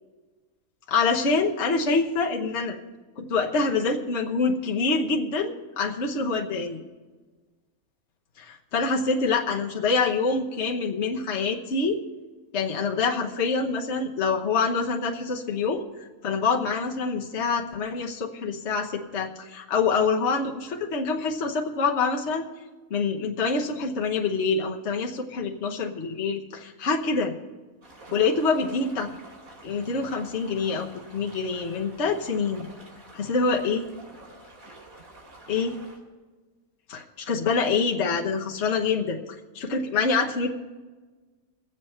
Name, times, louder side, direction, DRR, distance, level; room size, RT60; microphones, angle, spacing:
voice 1, 0.9-2.8 3.2-6.8 8.4-12.0 12.5-22.5 22.9-27.3 28.1-29.1 29.6-32.7 33.1-33.9 35.5-35.7 36.9-39.2 39.5-40.5, left 4 dB, 55° left, 0 dB, 1.3 m, -26 dB
sound 1, 27.8-36.0, right 1 dB, 85° right, 3.4 m, -48 dB
22.0 x 8.1 x 4.4 m, 1.3 s
omnidirectional pair, 1.4 m